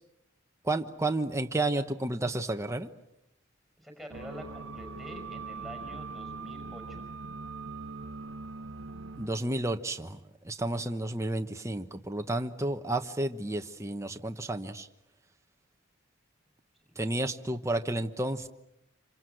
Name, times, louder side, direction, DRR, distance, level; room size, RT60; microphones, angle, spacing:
voice 1, 0.6-2.9 9.2-10.2 10.4-14.9 17.0-18.5, right 2 dB, 15° right, 5 dB, 1.1 m, -31 dB
voice 2, 3.8-7.1 16.9-17.0, equal, ahead, 4 dB, 5.2 m, -46 dB
sound 1, 4.1-9.3, right 4 dB, 80° right, 1.0 m, -41 dB
27.0 x 26.5 x 7.9 m, 0.85 s
head